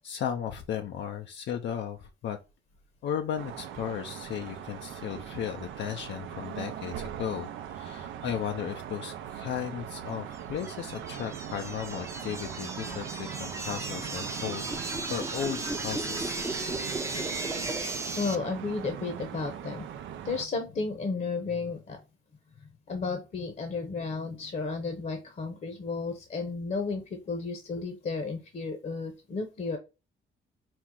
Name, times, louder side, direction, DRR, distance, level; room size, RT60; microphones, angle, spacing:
voice 1, 0.0-2.4 3.0-14.7 15.1-16.4, left 9 dB, 65° left, 0.5 m, -35 dB
sound 1, 3.4-20.5, right 9 dB, 75° right, 0.5 m, -40 dB
sound 2, 10.4-18.4, right 2 dB, 15° right, 0.6 m, -35 dB
voice 2, 18.2-19.9 20.2-22.0 22.9-29.8, left 4 dB, 40° left, 0.8 m, -33 dB
4.5 x 2.0 x 3.6 m
cardioid pair, 90°, 20 cm